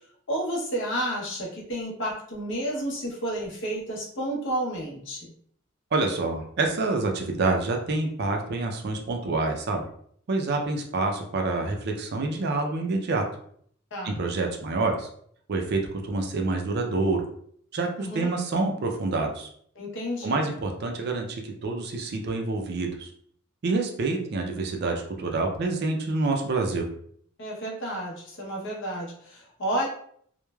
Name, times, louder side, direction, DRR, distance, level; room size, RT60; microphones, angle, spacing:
voice 1, 0.3-5.3 13.9-14.2 18.0-18.3 19.8-20.4 27.4-29.9, right 1 dB, 60° left, -2 dB, 0.8 m, -31 dB
voice 2, 5.9-9.8 10.3-13.2 14.0-15.1 15.5-17.2 17.7-19.5 20.2-23.1 23.6-26.9, right 3 dB, 50° right, 3 dB, 0.4 m, -27 dB
3.0 x 2.1 x 2.2 m, 0.62 s
head